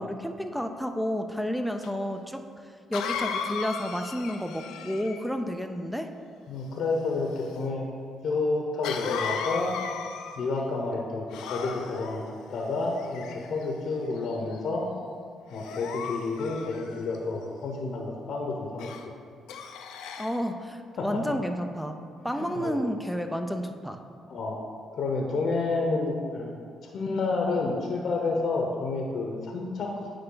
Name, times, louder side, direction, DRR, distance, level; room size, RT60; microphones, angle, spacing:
voice 1, 0.0-2.4 2.9-6.1 20.2-22.0 22.2-24.0, equal, ahead, 5 dB, 0.5 m, -31 dB
Cough, 1.8-1.9 2.9-5.3 8.8-10.6 11.3-12.2 13.0-13.6 14.2-14.5 15.5-17.2 18.8-19.0 19.5-20.4, left 6 dB, 90° left, 0.4 m, -35 dB
voice 2, 6.5-7.9 8.2-9.7 10.4-14.9 15.5-18.9 21.0-21.2 22.3-22.8 24.3-24.6 24.9-29.9, left 3 dB, 65° left, 0 dB, 0.8 m, -30 dB
9.5 x 3.4 x 3.8 m, 2.2 s
cardioid pair, 90°, 0 cm